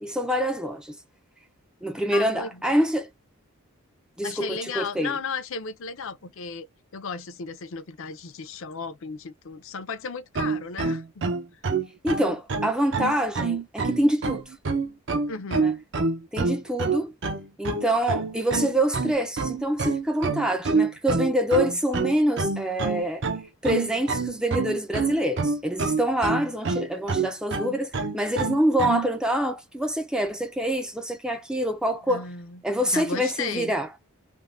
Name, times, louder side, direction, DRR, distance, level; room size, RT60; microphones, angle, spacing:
voice 1, 0.0-1.0 1.8-3.1 4.2-5.1 12.0-14.6 15.6-15.7 16.3-17.1 17.6-23.2 23.6-32.2 32.6-33.9, equal, 5° right, 0.3 m, -26 dB
voice 2, 2.1-2.7 4.2-6.7 6.9-11.2 11.5-11.6 15.3-15.7 32.1-32.6 32.9-33.7, left 5 dB, 65° left, 0.5 m, -35 dB
sound 1, 10.3-29.1, right 4 dB, 55° right, 0.6 m, -27 dB
3.4 x 2.1 x 2.4 m
head